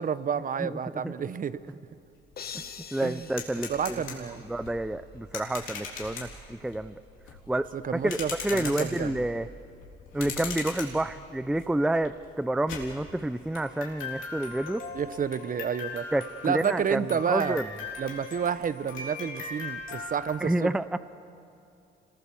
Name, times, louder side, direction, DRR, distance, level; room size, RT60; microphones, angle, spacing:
voice 1, 0.0-1.6 3.0-3.3 3.7-4.4 7.7-9.2 14.9-16.0 16.4-17.6 18.0-20.7, right 7 dB, 45° right, 16 dB, 0.8 m, -30 dB
sound 1, 1.9-2.0 2.3-20.4, left 4 dB, 85° left, 3.8 m, -40 dB
sound 2, 2.4-4.7, left 7 dB, 50° left, 1.3 m, -44 dB
voice 2, 2.9-6.9 7.5-9.5 10.1-14.8 16.1-17.0 17.3-17.7 20.4-21.0, right 1 dB, 5° right, 14 dB, 0.5 m, -29 dB
28.0 x 21.0 x 7.0 m, 2.7 s
cardioid pair, 90°, 20 cm